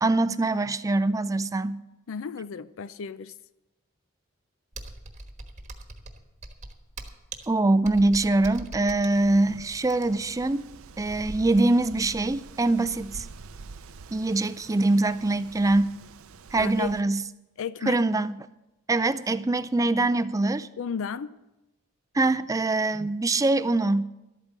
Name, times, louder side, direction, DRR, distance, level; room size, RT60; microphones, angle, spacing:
voice 1, 0.0-1.8 7.5-10.7 11.0-13.3 14.1-15.9 16.5-17.2 17.9-18.3 18.9-20.7 22.1-24.0, right 2 dB, 15° right, 0.4 m, -23 dB
voice 2, 2.1-3.3 16.6-17.0 17.6-18.0 20.8-21.3, left 6 dB, 65° left, 0.4 m, -33 dB
Computer keyboard, 4.7-10.3, right 2 dB, 35° right, 1.2 m, -42 dB
Wind, 9.1-17.0, right 4 dB, 70° right, 0.6 m, -45 dB
12.0 x 8.8 x 7.4 m
head